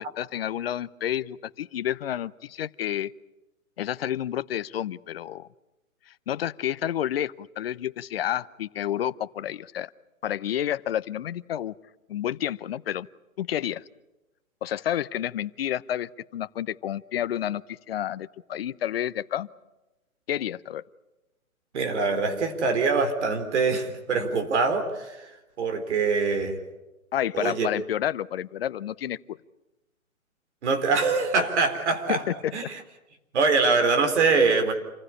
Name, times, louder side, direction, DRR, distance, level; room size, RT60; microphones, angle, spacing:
voice 1, 0.0-3.1 3.8-5.5 6.3-9.9 10.2-11.7 12.1-13.1 13.4-13.8 14.6-19.5 20.3-20.8 27.1-29.4 32.1-32.5, left 11 dB, 45° left, 17 dB, 0.7 m, -30 dB
voice 2, 21.7-25.3 25.6-26.6 27.3-27.7 30.6-32.2 32.5-32.8 33.3-34.7, right 4 dB, 55° right, 7 dB, 4.0 m, -24 dB
27.5 x 15.5 x 9.9 m, 1.0 s
hypercardioid pair, 140°, 41 cm